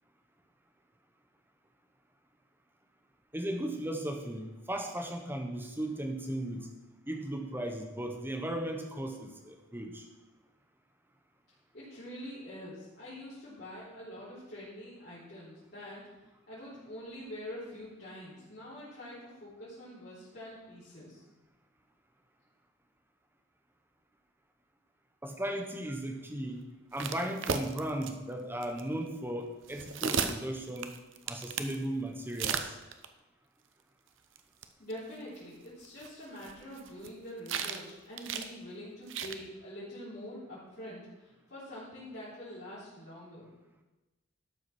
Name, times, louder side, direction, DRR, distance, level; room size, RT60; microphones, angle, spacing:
voice 1, 3.3-6.7 7.1-10.0 25.2-31.0 31.3-32.8, right 1 dB, 10° right, 4 dB, 1.0 m, -36 dB
voice 2, 11.7-16.1 16.5-21.2 34.8-43.5, equal, 50° left, -11 dB, 3.6 m, -45 dB
sound 1, 26.9-28.1 28.6-28.8 29.6-31.7 32.3-33.0 34.4-34.5 34.6-34.7 34.9-35.0 35.8-37.1 37.5-37.9 38.2-38.5 39.1-39.3, right 6 dB, 70° right, 0.7 m, -34 dB
12.0 x 5.9 x 6.1 m, 1.1 s
head